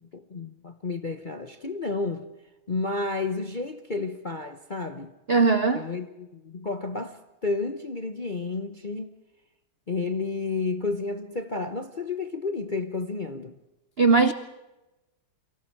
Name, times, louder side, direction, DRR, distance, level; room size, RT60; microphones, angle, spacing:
voice 1, 0.0-2.3 2.7-5.1 5.7-9.1 9.9-13.5, left 3 dB, 45° left, 0.6 m, -31 dB
voice 2, 5.3-5.8 14.0-14.3, right 4 dB, 70° right, 0.5 m, -19 dB
29.0 x 24.0 x 4.6 m
omnidirectional pair, 2.3 m